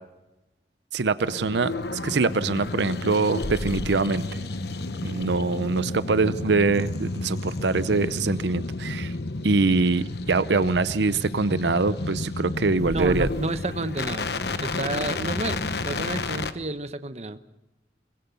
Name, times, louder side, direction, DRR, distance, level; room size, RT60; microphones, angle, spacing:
voice 1, 0.9-1.7 2.0-4.2 5.0-9.1 9.4-13.3, right 3 dB, 80° right, 15 dB, 0.7 m, -24 dB
sound 1, 1.2-16.5, left 2 dB, 65° left, 1.0 m, -31 dB
voice 2, 12.9-14.3 14.6-17.4, right 2 dB, 40° right, 11 dB, 0.9 m, -30 dB
23.0 x 21.0 x 6.9 m, 1.0 s
head